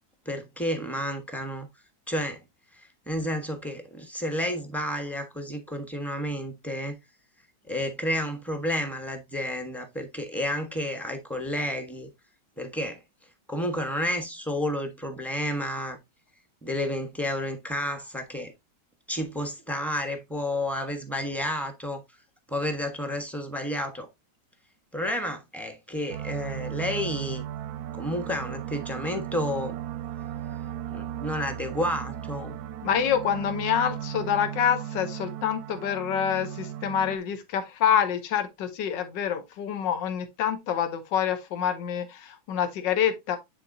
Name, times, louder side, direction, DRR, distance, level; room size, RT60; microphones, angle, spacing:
voice 1, 0.2-1.7 2.1-2.4 3.1-7.0 7.7-12.1 12.6-13.0 13.5-16.0 16.6-18.5 19.1-22.0 22.5-24.1 24.9-27.4 27.9-29.7 30.9-32.6, left 1 dB, ahead, 0.9 m, -31 dB
sound 1, 26.1-37.2, right 11 dB, 70° right, 1.0 m, -36 dB
voice 2, 32.8-43.4, left 8 dB, 80° left, 1.6 m, -27 dB
9.7 x 4.0 x 2.7 m
omnidirectional pair, 1.9 m